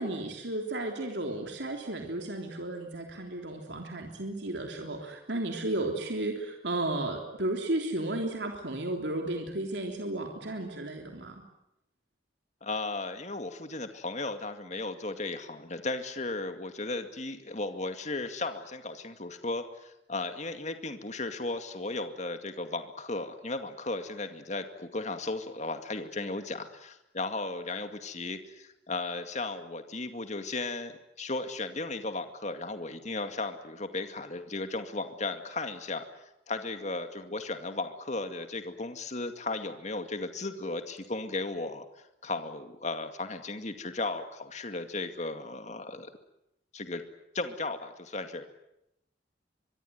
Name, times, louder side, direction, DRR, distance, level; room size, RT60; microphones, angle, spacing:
voice 1, 0.0-11.4, right 2 dB, 70° right, 3 dB, 3.5 m, -33 dB
voice 2, 12.6-30.9 31.2-36.0 36.5-41.9 42.2-46.1 46.7-47.0 47.3-48.4, left 2 dB, 40° left, 8 dB, 2.2 m, -35 dB
25.0 x 22.5 x 9.5 m, 0.84 s
head